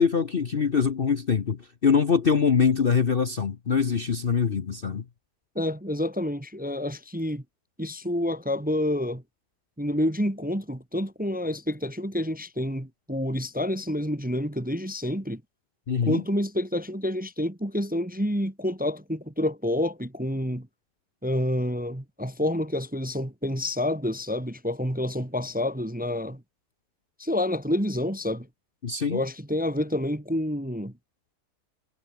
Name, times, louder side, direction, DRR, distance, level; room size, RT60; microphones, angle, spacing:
voice 1, 0.0-5.0 15.9-16.2 28.8-29.2, left 6 dB, 40° left, 1.0 m, -23 dB
voice 2, 5.5-7.4 7.8-9.2 9.8-15.4 16.0-20.7 21.2-26.4 27.2-28.5 29.1-30.9, left 1 dB, 5° right, 1.0 m, -28 dB
omnidirectional pair, 1.8 m